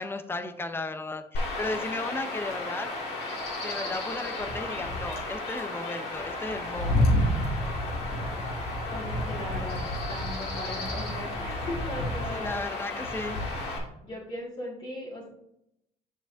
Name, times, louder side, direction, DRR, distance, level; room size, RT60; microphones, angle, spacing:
voice 1, 0.0-3.2 3.6-7.1 11.2-11.3 12.3-13.4, left 2 dB, 15° left, 9 dB, 0.6 m, -35 dB
Chirp tweet / Wind / Stream, 1.3-13.8, left 1 dB, 75° left, 2.3 m, -31 dB
voice 2, 8.9-9.8 10.1-12.6 14.0-15.3, left 1 dB, 35° left, -7 dB, 1.9 m, -38 dB
7.4 x 6.6 x 2.6 m, 0.79 s
cardioid pair, 110°, 17 cm